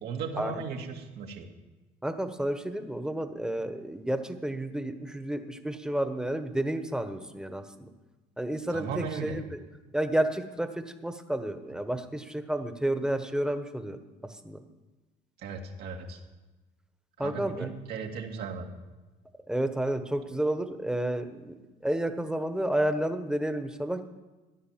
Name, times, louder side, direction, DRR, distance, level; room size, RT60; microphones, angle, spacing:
voice 1, 0.0-1.5 8.7-9.4 15.4-16.2 17.2-18.7, right 5 dB, 75° right, 2 dB, 2.3 m, -36 dB
voice 2, 2.0-7.9 8.4-9.6 9.9-10.7 11.0-14.0 14.2-14.6 17.2-17.7 19.5-21.5 21.8-24.0, right 1 dB, 5° right, 8 dB, 1.2 m, -31 dB
15.0 x 10.5 x 7.4 m, 1.2 s
cardioid pair, 110°, 17 cm